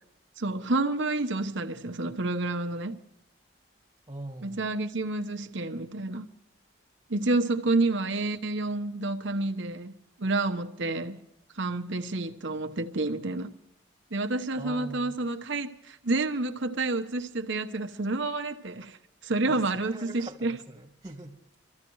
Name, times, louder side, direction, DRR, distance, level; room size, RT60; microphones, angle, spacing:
voice 1, 0.4-3.0 4.4-6.3 7.1-11.2 11.5-13.5 14.1-19.0 19.2-20.6, right 2 dB, 65° right, 1.0 m, -29 dB
voice 2, 4.1-4.6 14.6-15.3 19.5-21.4, right 1 dB, 20° right, 2.1 m, -42 dB
25.0 x 14.5 x 3.1 m
head